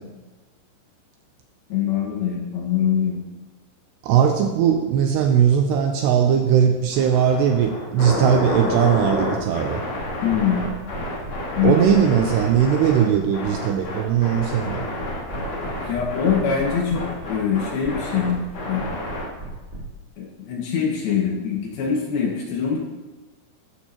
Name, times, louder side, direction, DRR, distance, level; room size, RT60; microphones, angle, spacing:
voice 1, 1.7-3.2 10.2-10.6 11.6-11.8 15.9-17.0 17.3-18.4 18.7-19.1 20.2-22.8, left 7 dB, 65° left, -2 dB, 3.0 m, -23 dB
voice 2, 4.0-9.8 11.6-14.9, right 8 dB, 80° right, 4 dB, 2.5 m, -19 dB
sound 1, 6.9-13.0 13.3-19.3, left 1 dB, 45° left, 2.7 m, -29 dB
sound 2, 10.0-19.8, right 2 dB, 15° right, 3.2 m, -36 dB
13.5 x 12.0 x 3.0 m, 1.2 s
omnidirectional pair, 5.4 m